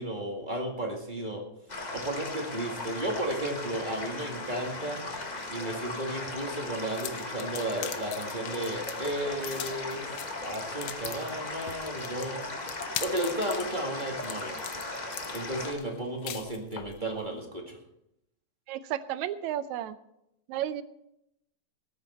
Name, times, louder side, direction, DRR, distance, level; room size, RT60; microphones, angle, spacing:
voice 1, 0.0-1.4 1.9-5.0 5.5-10.1 10.4-12.4 13.0-14.5 15.3-17.8, right 1 dB, 20° right, 0 dB, 1.6 m, -33 dB
sound 1, 1.7-15.7, left 2 dB, 65° left, 0.4 m, -38 dB
sound 2, 6.9-17.0, left 10 dB, 85° left, 1.1 m, -41 dB
voice 2, 18.7-20.0 20.5-20.8, right 11 dB, 80° right, 13 dB, 2.0 m, -32 dB
18.5 x 9.0 x 4.2 m, 0.81 s
omnidirectional pair, 3.3 m